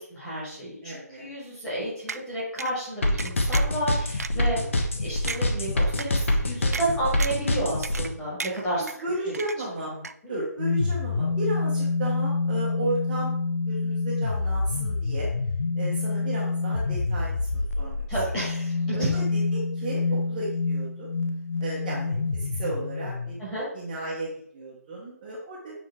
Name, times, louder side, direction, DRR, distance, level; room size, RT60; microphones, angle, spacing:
voice 1, 0.0-8.8 9.3-9.4 18.1-19.1 23.4-23.6, right 1 dB, 5° left, -9 dB, 1.6 m, -31 dB
voice 2, 0.8-1.3 4.3-4.7 8.7-9.9 10.3-13.3 13.7-15.3 15.7-18.0 18.3-18.4 18.9-21.1 21.6-23.4 23.7-25.9, right 2 dB, 10° right, -9 dB, 0.8 m, -34 dB
sound 1, 2.1-2.2 2.6-2.7 3.2-3.8 4.2-4.3 4.8-4.9 5.3-5.4 6.0-6.1 6.7-6.9 7.2-7.5 7.8-8.1 8.4-9.0 9.3-9.8 10.0-10.1, right 4 dB, 65° right, 0.4 m, -34 dB
sound 2, 3.0-8.1, left 2 dB, 50° left, 1.1 m, -24 dB
sound 3, 10.6-23.4, left 3 dB, 65° left, 0.7 m, -27 dB
7.6 x 4.5 x 3.5 m, 0.67 s
hypercardioid pair, 175°, 9 cm